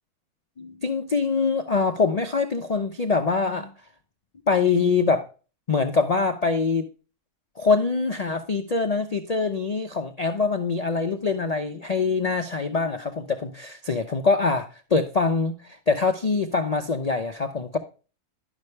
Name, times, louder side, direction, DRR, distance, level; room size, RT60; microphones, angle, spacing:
voice 1, 0.6-3.7 4.5-5.2 5.7-6.8 7.6-17.8, left 4 dB, 70° left, 6 dB, 0.3 m, -24 dB
11.0 x 6.2 x 3.2 m, 0.35 s
omnidirectional pair, 1.7 m